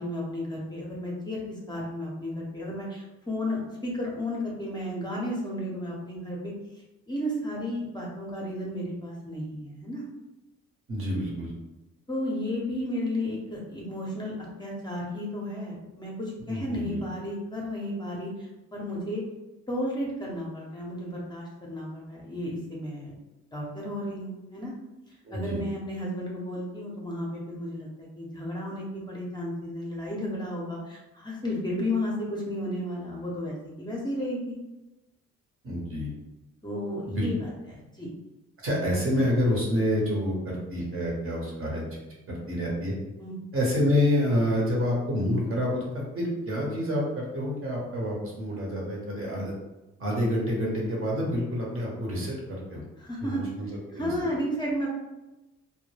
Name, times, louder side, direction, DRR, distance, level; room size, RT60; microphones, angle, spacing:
voice 1, 0.0-6.5 7.1-10.0 12.1-14.3 14.6-19.2 19.7-23.1 23.5-24.7 25.1-34.6 36.6-38.1 43.2-43.4 53.0-53.4 53.9-54.9, left 1 dB, 15° left, -4 dB, 0.6 m, -33 dB
voice 2, 10.9-11.5 16.5-17.0 25.2-25.6 35.6-36.1 37.1-37.3 38.6-41.8 42.3-42.9 43.5-49.5 50.0-52.4 52.7-52.8 53.2-54.1, left 1 dB, 45° right, -3 dB, 1.0 m, -28 dB
2.2 x 2.1 x 3.1 m, 1.0 s
cardioid pair, 90°, 30 cm